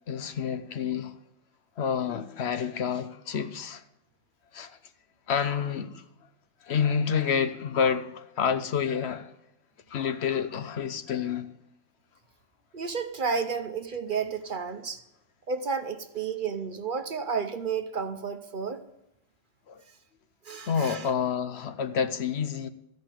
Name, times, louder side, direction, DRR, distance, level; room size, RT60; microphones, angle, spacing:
voice 1, 0.1-1.1 1.8-3.8 4.5-4.8 5.3-6.0 6.6-9.3 9.9-11.5 19.7-19.8 20.7-22.7, left 7 dB, 65° left, 0.9 m, -28 dB
voice 2, 12.7-15.0 15.5-18.8 20.4-21.1, right 5 dB, 50° right, 0.8 m, -31 dB
14.0 x 5.3 x 9.0 m
omnidirectional pair, 1.2 m